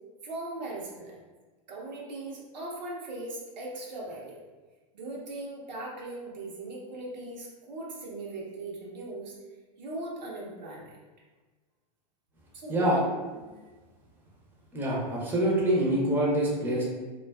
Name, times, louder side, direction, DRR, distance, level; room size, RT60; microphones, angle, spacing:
voice 1, 0.2-1.2 1.7-4.4 4.9-9.3 9.8-10.9 12.5-12.9 13.3-13.5, right 2 dB, 90° right, -3 dB, 0.7 m, -39 dB
voice 2, 14.7-16.8, right 1 dB, 10° right, -4 dB, 0.5 m, -25 dB
2.4 x 2.3 x 2.2 m, 1.3 s
hypercardioid pair, 120°, 21 cm